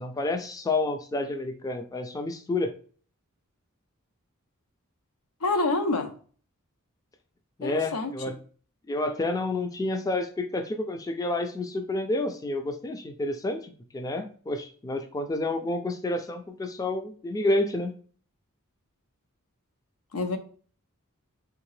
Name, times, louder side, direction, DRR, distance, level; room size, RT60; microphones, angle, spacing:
voice 1, 0.0-2.7 7.6-8.4 8.9-17.9, left 2 dB, 15° left, 7 dB, 0.3 m, -29 dB
voice 2, 5.4-6.1 7.6-8.1 20.1-20.4, left 3 dB, 90° left, 6 dB, 0.6 m, -27 dB
3.6 x 2.7 x 3.1 m, 0.43 s
head